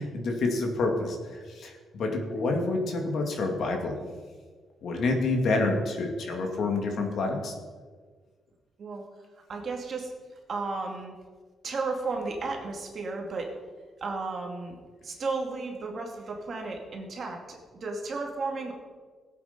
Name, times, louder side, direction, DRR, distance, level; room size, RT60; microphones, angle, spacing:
voice 1, 0.0-4.0 4.8-7.5, left 3 dB, 50° left, 2 dB, 2.4 m, -28 dB
voice 2, 9.5-10.1 10.5-11.1 11.6-13.5 14.0-14.8 15.0-18.7, right 3 dB, 35° right, 1 dB, 2.3 m, -33 dB
20.5 x 8.5 x 5.3 m, 1.5 s
cardioid pair, 175°, 0 cm